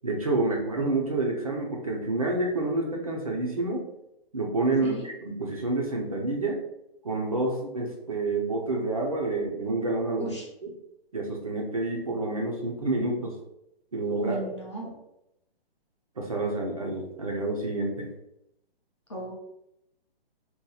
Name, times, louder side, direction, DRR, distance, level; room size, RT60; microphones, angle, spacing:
voice 1, 0.0-3.8 4.3-6.6 7.0-10.3 10.6-10.7 11.1-13.3 13.9-14.4 16.2-18.1, right 2 dB, 35° right, -1 dB, 0.4 m, -28 dB
voice 2, 14.2-14.9 19.1-19.3, right 2 dB, 30° left, -3 dB, 0.5 m, -35 dB
2.7 x 2.2 x 3.8 m, 0.83 s
hypercardioid pair, 170°, 31 cm